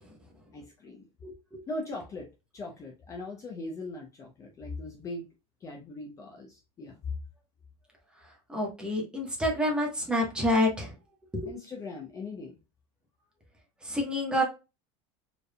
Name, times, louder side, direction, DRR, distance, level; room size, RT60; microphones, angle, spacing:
voice 1, 0.5-1.1 1.7-2.3 2.5-5.3 5.6-7.1 11.5-12.6, left 2 dB, 25° left, 1 dB, 0.7 m, -39 dB
voice 2, 1.2-1.6 8.5-10.9 11.3-11.5 13.8-14.4, left 1 dB, 5° right, -1 dB, 1.1 m, -28 dB
4.3 x 3.4 x 2.2 m, 0.28 s
cardioid pair, 160°, 13 cm